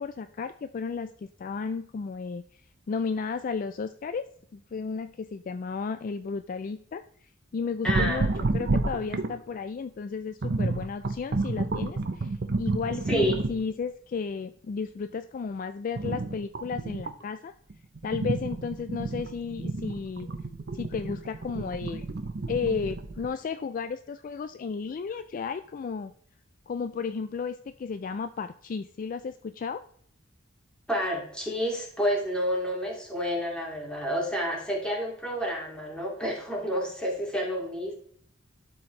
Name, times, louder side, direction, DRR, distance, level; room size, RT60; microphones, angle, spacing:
voice 1, 0.0-2.4 2.9-4.3 4.5-7.0 7.5-8.3 8.5-17.5 18.0-20.3 20.7-22.1 22.5-26.1 26.7-29.8, left 5 dB, 40° left, 10 dB, 0.3 m, -33 dB
voice 2, 7.8-8.2 13.1-13.3 30.9-37.9, equal, 5° left, -3 dB, 2.4 m, -29 dB
sound 1, 7.9-9.5 10.4-13.7 16.0-17.2 17.7-23.3, right 2 dB, 55° right, 0.7 m, -30 dB
12.0 x 4.4 x 3.2 m, 0.63 s
head